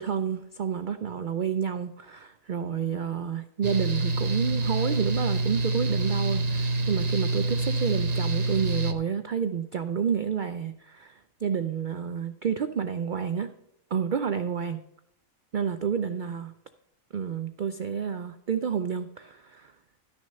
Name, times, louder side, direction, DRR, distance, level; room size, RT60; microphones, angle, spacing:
voice 1, 0.0-13.5 13.9-14.8 15.5-16.5 17.1-19.7, right 7 dB, 70° right, 10 dB, 0.4 m, -29 dB
Mechanical fan, 3.6-8.9, right 2 dB, 35° right, 0.8 m, -27 dB
12.5 x 6.4 x 5.3 m, 0.79 s
omnidirectional pair, 1.4 m